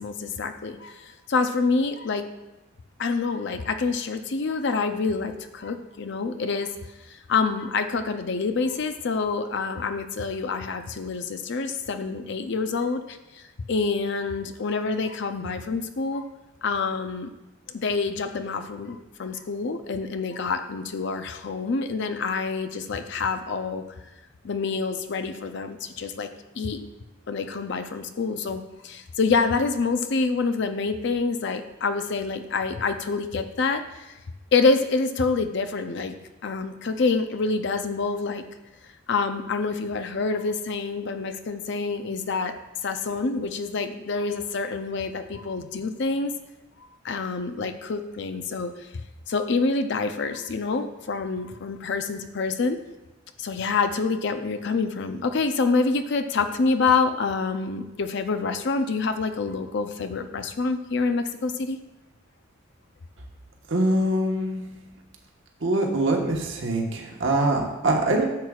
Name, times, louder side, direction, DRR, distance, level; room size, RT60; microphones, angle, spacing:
voice 1, 0.0-2.3 3.0-6.7 7.1-16.3 16.6-17.3 17.7-23.8 24.4-26.3 26.6-26.9 27.3-34.2 34.5-36.1 36.4-38.4 39.1-42.5 42.8-46.3 47.0-48.9 49.3-52.8 53.4-61.8, left 4 dB, 65° left, 8 dB, 0.5 m, -27 dB
voice 2, 63.7-64.6 65.6-68.2, right 1 dB, 70° right, 0 dB, 1.3 m, -23 dB
12.0 x 7.5 x 2.4 m, 1.0 s
head